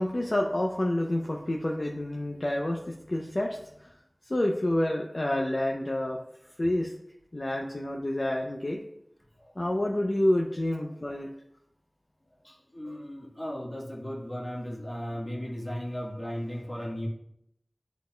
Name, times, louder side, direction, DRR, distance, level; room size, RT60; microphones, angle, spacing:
voice 1, 0.0-3.9 4.3-6.2 6.6-6.9 7.3-8.8 9.6-11.3, left 1 dB, 50° left, 0 dB, 0.6 m, -28 dB
voice 2, 12.4-17.1, equal, 30° left, -2 dB, 1.5 m, -36 dB
10.5 x 4.0 x 2.2 m, 0.75 s
wide cardioid pair, 50°, 0 cm